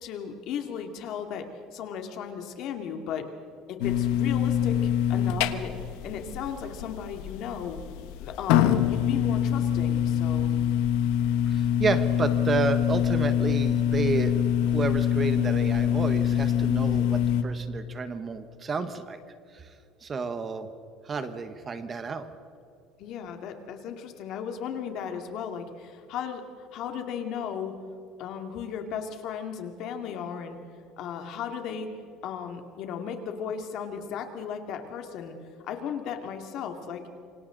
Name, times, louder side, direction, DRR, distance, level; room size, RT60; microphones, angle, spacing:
voice 1, 0.0-3.3 3.7-4.8 5.1-5.7 6.0-7.8 8.2-10.5 23.0-27.7 28.2-30.6 31.0-31.9 32.2-35.4 35.7-37.1, left 7 dB, 55° left, 5 dB, 2.4 m, -35 dB
sound 1, 3.8-17.4, left 9 dB, 80° left, 1.3 m, -25 dB
voice 2, 11.5-19.2 19.5-19.7 20.0-20.7 21.0-22.3, right 4 dB, 25° right, 10 dB, 1.2 m, -31 dB
28.0 x 25.0 x 4.0 m, 2.6 s
cardioid pair, 155°, 0 cm